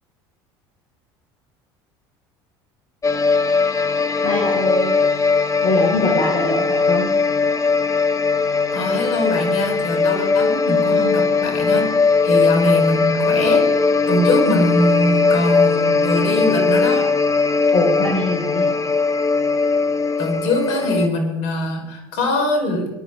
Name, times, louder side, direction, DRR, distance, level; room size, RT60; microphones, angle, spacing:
sound 1, 3.0-21.1, left 4 dB, 25° left, 1.3 m, -19 dB
voice 1, 4.2-4.9 5.6-7.1 12.5-12.6 17.7-18.7, left 2 dB, 45° left, -2 dB, 5.8 m, -22 dB
voice 2, 8.7-11.9 12.2-17.1 20.2-22.9, left 1 dB, 65° left, 2 dB, 5.3 m, -22 dB
22.5 x 11.5 x 3.9 m, 1.0 s
hypercardioid pair, 75°, 13 cm